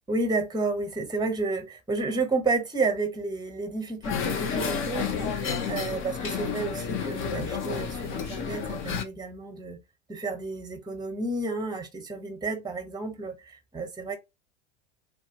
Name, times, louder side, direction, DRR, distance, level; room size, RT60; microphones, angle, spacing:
voice 1, 0.1-9.8 10.1-14.2, right 3 dB, 10° right, 1.2 m, -31 dB
sound 1, 4.0-9.0, left 6 dB, 35° left, 0.9 m, -31 dB
3.5 x 2.6 x 2.9 m
figure-of-eight pair, 85°, 34 cm